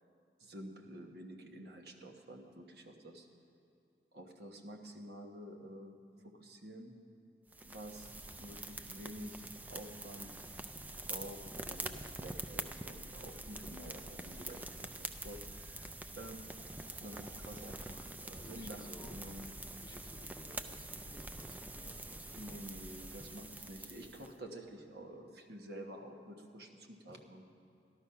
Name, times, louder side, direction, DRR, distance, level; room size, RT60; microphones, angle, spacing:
voice 1, 0.4-3.3 4.1-6.0 6.2-6.9 7.6-10.3 11.0-16.5 17.0-19.5 22.3-27.5, right 1 dB, 65° right, 3 dB, 1.2 m, -49 dB
sound 1, 7.5-24.3, right 2 dB, 10° right, 0.3 m, -46 dB
sound 2, 10.4-12.4 13.7-14.9 16.3-17.8, equal, 45° right, 1.9 m, -62 dB
voice 2, 18.4-19.2 19.8-22.6 23.0-23.2, left 1 dB, 25° left, 4 dB, 0.7 m, -56 dB
13.0 x 12.5 x 5.7 m, 2.7 s
head